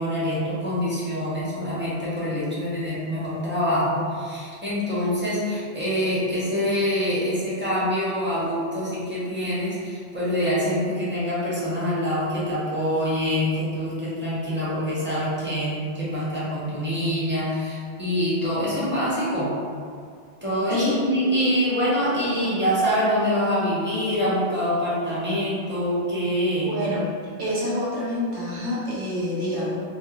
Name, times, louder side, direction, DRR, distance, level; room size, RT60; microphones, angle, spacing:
voice 1, 0.0-19.5 20.4-26.7, equal, 15° right, -10 dB, 0.5 m, -25 dB
voice 2, 20.7-21.1 26.6-27.1 27.4-29.8, left 1 dB, 55° right, -8 dB, 0.7 m, -27 dB
2.2 x 2.1 x 2.9 m, 2.2 s
omnidirectional pair, 1.1 m